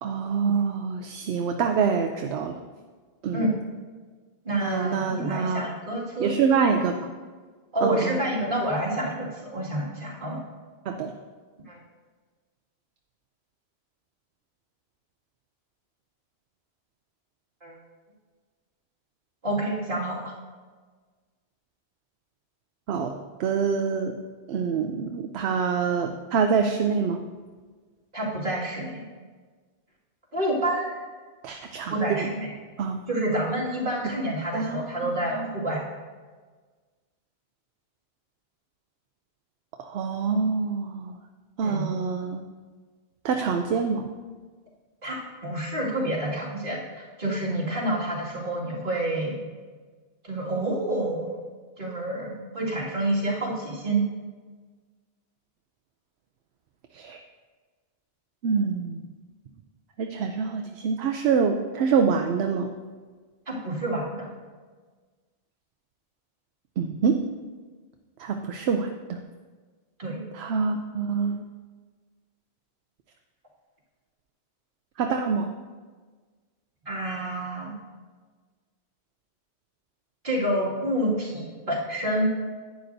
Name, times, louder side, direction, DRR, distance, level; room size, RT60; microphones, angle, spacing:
voice 1, 0.0-2.6 3.2-3.5 4.6-5.6 6.2-7.0 7.8-8.2 10.9-11.1 22.9-24.2 24.5-27.2 31.4-31.9 32.3-32.4 32.8-33.0 34.5-35.5 39.8-41.2 41.6-42.4 43.2-44.1 56.9-57.2 58.4-59.0 60.0-62.7 66.8-67.3 68.2-69.2 70.3-71.4 75.0-75.5, right 5 dB, 80° right, 5 dB, 0.8 m, -26 dB
voice 2, 4.4-6.3 7.7-10.4 11.7-11.8 17.6-17.8 19.4-20.3 28.1-29.0 30.3-31.0 31.9-32.5 33.1-35.8 41.6-41.8 45.0-49.4 50.2-51.4 51.8-54.0 63.5-64.3 70.0-70.2 76.9-77.7 80.2-82.4, right 1 dB, 50° right, -6 dB, 2.4 m, -28 dB
11.0 x 9.2 x 2.6 m, 1.4 s
omnidirectional pair, 1.1 m